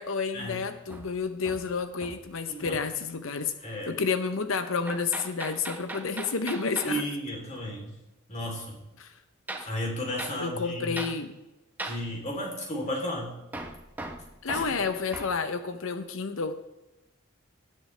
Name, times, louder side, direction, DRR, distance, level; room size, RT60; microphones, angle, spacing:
voice 1, 0.0-7.1 9.0-9.1 9.6-9.7 10.4-11.4 14.4-16.5, left 5 dB, 75° left, 9 dB, 0.8 m, -30 dB
Hammer, 0.9-2.4 2.6-3.0 4.9-7.0 9.5-9.7 10.2-10.4 11.0-11.2 11.8-12.1 13.5-15.4, right 2 dB, 10° right, 0.9 m, -39 dB
voice 2, 3.6-4.0 6.8-7.9 8.3-8.8 9.6-10.9 11.8-13.3 14.5-14.6, equal, 35° left, -2 dB, 3.4 m, -33 dB
17.5 x 7.6 x 3.3 m, 1.0 s
head